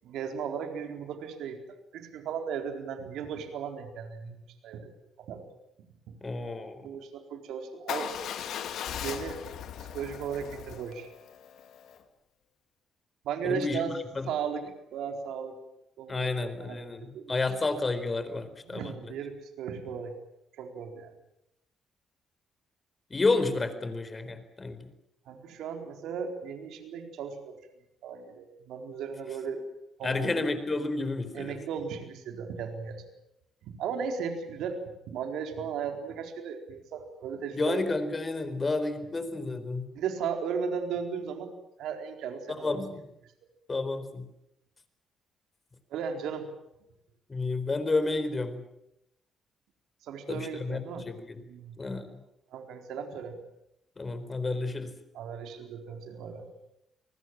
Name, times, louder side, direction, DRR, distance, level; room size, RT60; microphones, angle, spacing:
voice 1, 0.0-1.6 1.9-4.9 5.2-5.5 6.1-6.2 6.8-8.1 9.0-9.4 9.8-11.1 13.2-13.9 14.3-14.6 14.9-15.6 16.0-17.4 18.7-20.2 20.6-21.1 25.3-27.6 28.0-29.6 30.0-30.5 31.3-33.0 33.6-34.8 35.1-37.8 39.9-41.5 41.8-42.8 45.9-46.5 50.0-51.1 51.4-51.8 52.5-53.4 55.1-56.5, right 6 dB, 85° right, 5 dB, 4.2 m, -36 dB
voice 2, 6.2-6.8 13.4-14.3 16.1-18.9 23.1-24.8 30.0-31.6 37.5-39.9 42.6-43.0 43.7-44.3 47.3-48.6 50.3-51.4 51.8-52.2 54.0-54.9, left 3 dB, 30° left, 11 dB, 4.3 m, -30 dB
Motorcycle / Engine starting / Idling, 7.9-12.0, left 9 dB, 75° left, 2.5 m, -38 dB
29.0 x 20.5 x 7.5 m, 0.82 s
cardioid pair, 90°, 0 cm